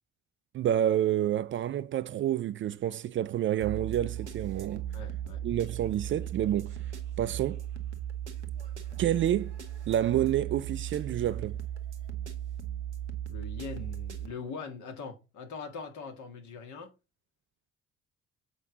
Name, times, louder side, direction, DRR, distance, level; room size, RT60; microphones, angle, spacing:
voice 1, 0.5-4.8 5.4-6.7 7.2-7.6 9.0-9.5 9.9-11.6, right 11 dB, 35° right, 0.4 m, -28 dB
sound 1, 3.6-14.3, right 10 dB, 85° right, 0.7 m, -37 dB
voice 2, 4.9-5.4 13.3-16.9, left 5 dB, 60° left, 1.8 m, -42 dB
7.5 x 5.0 x 3.9 m
figure-of-eight pair, 40°, 34 cm